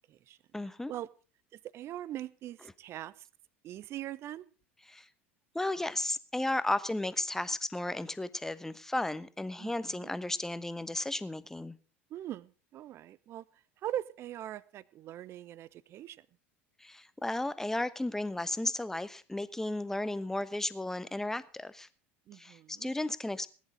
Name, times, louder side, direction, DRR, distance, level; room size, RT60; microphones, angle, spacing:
voice 1, 0.5-0.9 4.9-5.1 5.5-11.8 16.8-21.9 22.3-23.5, left 1 dB, 5° left, 15 dB, 1.1 m, -34 dB
voice 2, 1.5-3.1 3.6-4.5 9.6-10.1 12.1-13.4 13.8-16.3 22.3-22.9, right 12 dB, 40° right, 21 dB, 0.8 m, -41 dB
19.0 x 10.5 x 5.2 m, 0.38 s
figure-of-eight pair, 70°, 7 cm